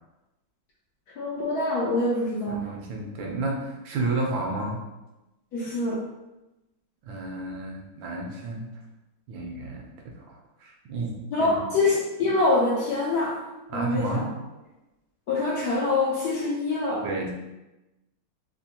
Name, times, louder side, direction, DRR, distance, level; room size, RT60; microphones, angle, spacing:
voice 1, 1.2-2.7 5.5-6.0 11.3-13.4 13.7-14.2 15.3-17.1, left 2 dB, 75° left, -4 dB, 0.9 m, -25 dB
voice 2, 2.5-4.8 7.1-8.7 9.3-9.8 10.1-11.7 13.7-14.3 17.0-17.3, right 2 dB, 70° right, 0 dB, 1.3 m, -31 dB
3.6 x 2.5 x 2.7 m, 1.0 s
omnidirectional pair, 2.3 m